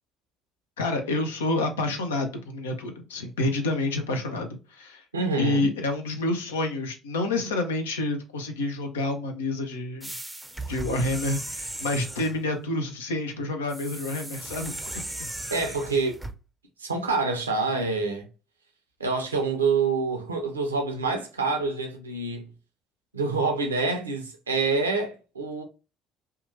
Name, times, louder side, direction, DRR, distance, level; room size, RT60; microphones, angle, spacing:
voice 1, 0.8-5.0 5.4-10.1 10.7-14.8 15.2-15.3, left 2 dB, 80° left, 0.5 m, -28 dB
voice 2, 5.1-5.7 15.5-16.2 16.8-18.3 19.0-22.5 23.1-25.6, right 4 dB, 90° right, 0.5 m, -26 dB
sound 1, 10.0-12.4 13.7-16.3, right 2 dB, 10° right, 0.5 m, -37 dB
2.8 x 2.3 x 2.5 m
figure-of-eight pair, 50°, 0 cm